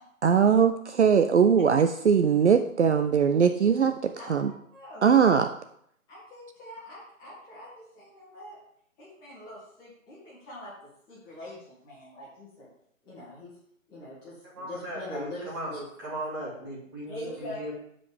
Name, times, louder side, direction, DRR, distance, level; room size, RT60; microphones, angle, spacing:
voice 1, 0.2-4.5 5.0-5.5, right 7 dB, 55° right, 8 dB, 0.5 m, -21 dB
voice 2, 4.2-5.1 6.1-8.6 9.0-10.7 11.1-12.7 13.0-13.5 13.9-15.9 17.1-17.6, left 1 dB, 10° left, -8 dB, 2.1 m, -43 dB
voice 3, 14.5-15.7 16.0-17.7, right 1 dB, 15° right, -5 dB, 1.9 m, -37 dB
13.0 x 5.1 x 3.5 m, 0.70 s
hypercardioid pair, 160°, 41 cm